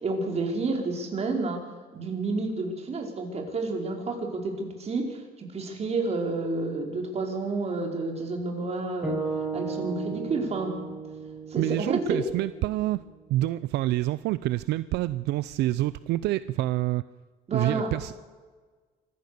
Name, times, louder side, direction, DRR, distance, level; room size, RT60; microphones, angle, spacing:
voice 1, 0.0-1.6 1.9-9.2 9.5-10.7 11.5-12.2 17.5-17.9, right 3 dB, 40° right, 2 dB, 4.8 m, -30 dB
sound 1, 9.0-13.3, right 4 dB, 5° right, 5.9 m, -35 dB
voice 2, 11.6-13.0 13.3-17.0 17.5-18.2, right 16 dB, 80° right, 15 dB, 0.6 m, -27 dB
25.5 x 15.0 x 6.8 m, 1.4 s
cardioid pair, 110°, 17 cm